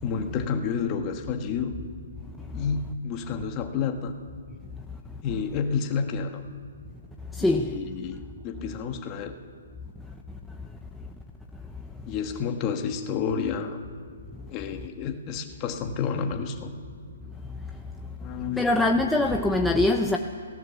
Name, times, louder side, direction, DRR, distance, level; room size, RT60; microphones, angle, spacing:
voice 1, 0.0-1.7 2.5-4.1 5.2-6.4 7.4-9.3 12.1-13.8 14.5-16.7 18.2-18.7, left 6 dB, 20° left, 5 dB, 1.4 m, -30 dB
voice 2, 7.4-7.7 18.6-20.2, left 2 dB, ahead, 2 dB, 0.6 m, -22 dB
29.0 x 18.0 x 7.2 m, 2.2 s
hypercardioid pair, 170°, 0 cm